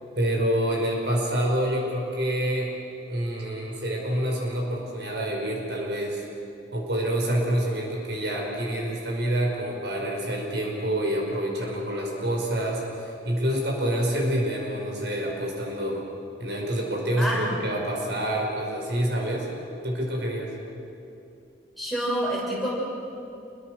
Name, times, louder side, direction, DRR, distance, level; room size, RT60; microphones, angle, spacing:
voice 1, 0.2-2.7 3.1-6.2 6.7-16.0 16.4-19.5 19.8-20.5, right 1 dB, 70° right, -1 dB, 5.4 m, -27 dB
voice 2, 17.2-17.5 21.8-22.7, equal, ahead, -6 dB, 6.3 m, -27 dB
28.0 x 23.0 x 6.5 m, 2.7 s
head